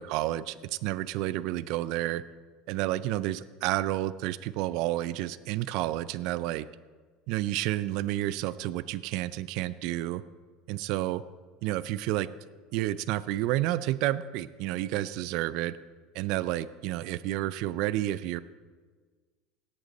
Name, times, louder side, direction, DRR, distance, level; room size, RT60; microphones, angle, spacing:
voice 1, 0.0-2.2 2.7-6.7 7.3-10.2 10.7-11.2 11.6-12.3 12.7-15.8 16.1-18.4, right 15 dB, 65° right, 17 dB, 0.4 m, -30 dB
17.5 x 8.2 x 4.1 m, 1.5 s
supercardioid pair, 125°, 0 cm